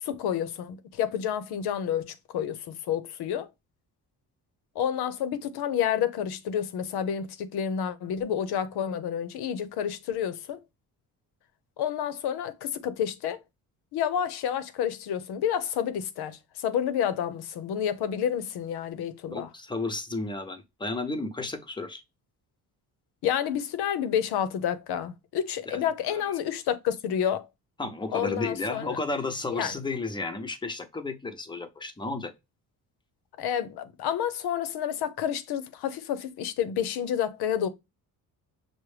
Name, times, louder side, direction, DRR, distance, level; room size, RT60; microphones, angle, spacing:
voice 1, 0.0-3.5 4.8-10.6 11.8-13.4 13.9-19.5 23.2-27.5 28.1-29.0 29.5-29.8 33.4-37.7, left 9 dB, 80° left, 0.7 m, -29 dB
voice 2, 19.3-22.0 25.7-25.8 26.1-26.2 27.8-32.3, left 3 dB, 10° left, 0.6 m, -33 dB
6.0 x 2.1 x 3.2 m
cardioid pair, 115°, 38 cm